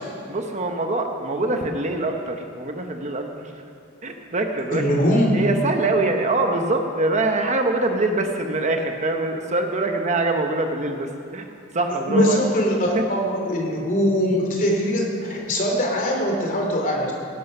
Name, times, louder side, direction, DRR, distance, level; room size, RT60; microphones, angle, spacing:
voice 1, 0.3-3.5 4.0-4.8 5.3-11.5 11.7-12.4 12.9-13.0, right 2 dB, 35° right, 4 dB, 1.0 m, -24 dB
voice 2, 4.7-5.4 12.1-17.1, equal, 40° left, 0 dB, 2.9 m, -21 dB
17.5 x 12.0 x 5.6 m, 2.6 s
head